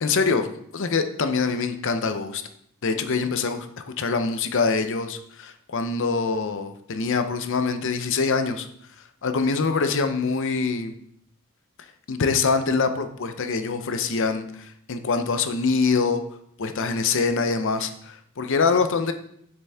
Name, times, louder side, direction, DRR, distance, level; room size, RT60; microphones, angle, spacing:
voice 1, 0.0-2.4 2.8-3.7 4.0-8.7 9.2-10.9 12.1-16.2 16.6-19.1, left 4 dB, 60° left, 8 dB, 0.6 m, -24 dB
6.9 x 6.8 x 3.5 m, 0.71 s
head